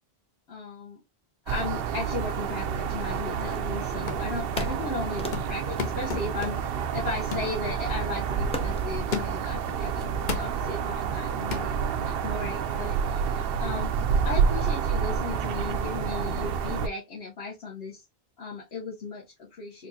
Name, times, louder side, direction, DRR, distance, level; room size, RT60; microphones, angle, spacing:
voice 1, 0.5-1.0 1.5-6.6 6.9-13.2 13.6-14.0 14.2-18.0 18.4-19.9, left 3 dB, 75° left, 1.3 m, -36 dB
sound 1, 1.5-16.9, right 7 dB, 70° right, 0.7 m, -29 dB
sound 2, 2.9-4.0 4.6-7.0 8.5-8.9, left 1 dB, 10° left, 0.4 m, -40 dB
sound 3, 4.1-4.3 4.6-4.9 5.3-6.8 7.3-7.6 8.1-8.2 9.1-9.6 10.3-10.6 11.5-11.7, left 6 dB, 50° left, 0.8 m, -34 dB
4.5 x 2.6 x 2.7 m
omnidirectional pair, 1.1 m